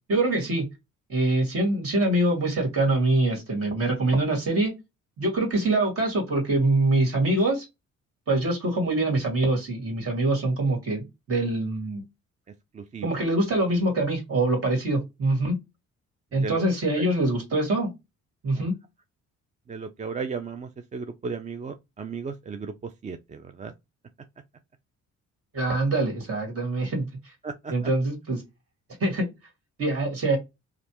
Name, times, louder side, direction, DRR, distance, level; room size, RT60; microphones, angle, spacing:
voice 1, 0.1-0.7 1.1-4.7 5.2-7.7 8.3-12.0 13.0-15.5 16.3-17.9 18.4-18.7 25.5-27.1 27.7-28.4 29.0-29.3 29.8-30.4, right 2 dB, 50° right, 2.0 m, -24 dB
voice 2, 12.7-13.1 16.4-16.6 17.0-17.1 18.6-18.7 19.7-22.7 23.0-23.7 27.4-27.7, right 5 dB, 25° right, 0.4 m, -35 dB
3.2 x 2.4 x 2.9 m
cardioid pair, 90°, 30 cm